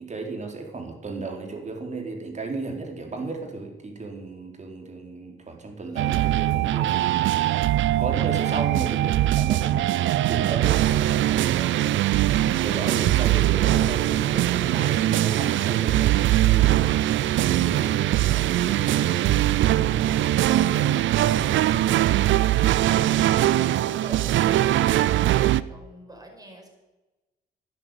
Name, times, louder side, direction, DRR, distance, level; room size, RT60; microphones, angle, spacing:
voice 1, 0.0-7.5 8.0-11.9 12.5-16.9 17.4-21.5, right 3 dB, 35° right, 2 dB, 4.0 m, -35 dB
voice 2, 5.8-7.0 23.8-26.7, right 1 dB, 20° right, 2 dB, 5.3 m, -45 dB
sound 1, 6.0-25.6, right 13 dB, 75° right, 0.6 m, -21 dB
12.5 x 10.0 x 9.1 m, 1.1 s
cardioid pair, 90°, 20 cm